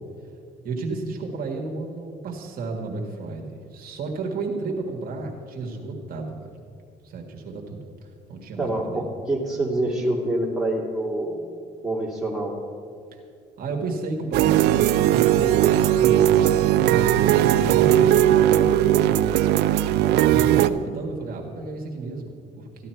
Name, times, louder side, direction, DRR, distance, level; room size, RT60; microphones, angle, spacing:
voice 1, 0.6-6.6 7.0-7.9 8.3-9.0 13.1-13.2 13.6-19.2 20.2-22.9, right 3 dB, 60° right, 0 dB, 1.7 m, -32 dB
voice 2, 8.6-11.4 11.8-12.5, right 1 dB, ahead, -4 dB, 2.5 m, -26 dB
sound 1, 14.3-20.7, right 12 dB, 80° right, 0.4 m, -18 dB
14.0 x 11.0 x 4.5 m, 2.4 s
cardioid pair, 110°, 17 cm